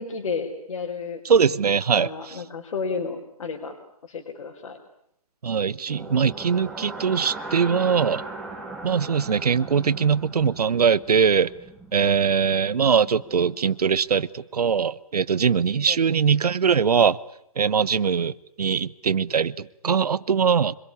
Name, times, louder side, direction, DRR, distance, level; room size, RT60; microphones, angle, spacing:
voice 1, 0.0-1.2 2.0-3.7 4.0-4.8 12.0-12.1 15.9-16.0, left 4 dB, 70° left, 4.7 m, -32 dB
voice 2, 1.2-2.4 5.4-8.2 8.8-11.5 11.9-17.2 17.6-20.7, right 6 dB, 90° right, 1.0 m, -22 dB
sound 1, 5.9-13.9, right 2 dB, ahead, 2.7 m, -39 dB
25.5 x 22.5 x 9.9 m
hypercardioid pair, 160°, 19 cm